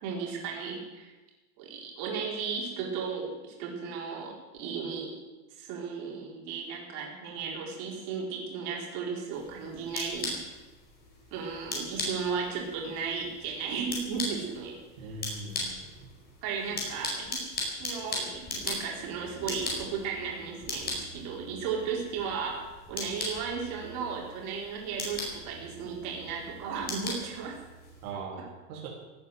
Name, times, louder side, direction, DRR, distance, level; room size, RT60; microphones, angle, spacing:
voice 1, 0.0-1.1 1.6-5.2 5.5-10.5 11.3-15.1 16.4-17.5 17.8-27.6, right 5 dB, 50° right, -1 dB, 4.6 m, -35 dB
sound 1, 9.3-28.1, left 2 dB, 20° left, 5.0 m, -39 dB
voice 2, 15.0-15.9 28.0-28.9, right 4 dB, 75° right, -2 dB, 3.6 m, -40 dB
17.0 x 9.2 x 7.9 m, 1.1 s
supercardioid pair, 155°, 44 cm